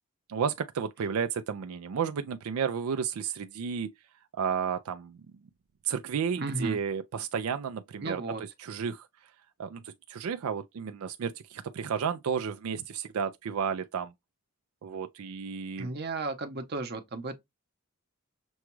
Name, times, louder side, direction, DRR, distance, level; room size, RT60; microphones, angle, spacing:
voice 1, 0.3-3.9 4.3-5.2 5.8-8.2 8.6-9.3 9.6-14.1 14.8-15.9, right 7 dB, 85° right, 0.4 m, -32 dB
voice 2, 6.4-6.8 8.0-8.4 15.8-17.3, right 3 dB, 50° right, 0.8 m, -34 dB
6.1 x 2.3 x 3.0 m
head